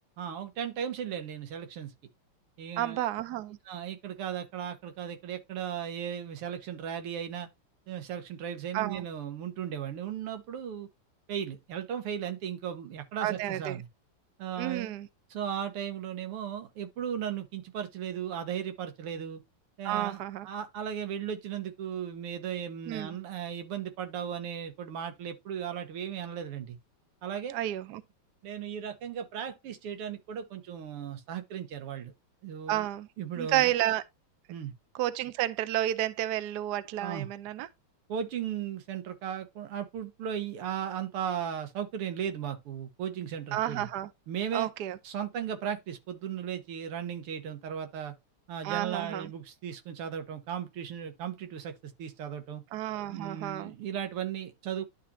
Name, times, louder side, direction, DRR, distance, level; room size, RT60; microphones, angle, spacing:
voice 1, 0.2-1.9 2.6-3.0 3.7-7.5 7.9-10.9 11.3-13.9 14.4-15.0 15.3-19.4 19.8-26.8 27.2-27.6 28.4-32.1 32.4-32.9 33.2-33.7 34.5-34.7 37.0-37.3 38.1-43.9 44.3-44.7 45.0-48.1 48.5-51.7 52.0-52.6 53.1-54.9, right 8 dB, 85° right, 2.1 m, -36 dB
voice 2, 2.8-3.6 8.7-9.0 13.2-13.8 14.6-15.1 19.8-20.5 22.9-23.1 27.5-28.0 32.7-33.1 33.4-34.0 34.9-37.7 43.5-44.1 44.5-45.0 48.6-49.3 52.7-53.7, right 13 dB, 65° right, 1.0 m, -31 dB
11.5 x 4.1 x 2.7 m
omnidirectional pair, 2.4 m